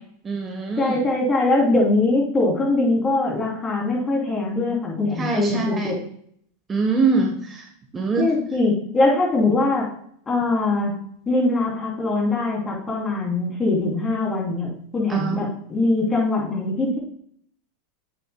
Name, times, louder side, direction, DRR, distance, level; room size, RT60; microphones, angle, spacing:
voice 1, 0.2-1.0 5.2-5.9 6.7-7.6 7.9-8.3 15.1-15.5, right 4 dB, 20° right, 2 dB, 1.1 m, -23 dB
voice 2, 0.8-5.9 8.2-9.9 10.3-11.0 11.3-17.0, left 2 dB, 20° left, -2 dB, 3.1 m, -22 dB
8.4 x 6.9 x 2.2 m, 0.65 s
hypercardioid pair, 110°, 0 cm